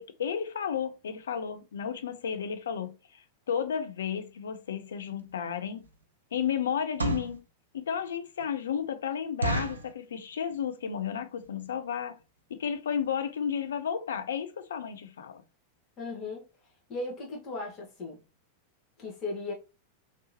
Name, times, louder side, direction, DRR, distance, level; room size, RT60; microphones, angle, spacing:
voice 1, 0.0-5.9 6.3-7.4 7.7-12.2 12.5-15.4, left 8 dB, 65° left, 0.4 m, -33 dB
sound 1, 5.2-5.3 5.8-6.0 6.7-7.4 8.0-8.1 8.4-8.5 8.8-8.9 9.4-9.9 10.5-10.8 11.1-11.2 11.4-11.7 12.2-12.3 12.5-12.7 13.0-13.1 13.3-13.4, right 2 dB, 75° right, 0.5 m, -31 dB
voice 2, 16.0-16.4 16.9-18.2 19.0-19.5, left 3 dB, 35° left, 1.4 m, -36 dB
3.2 x 3.0 x 2.8 m
figure-of-eight pair, 90°, 0 cm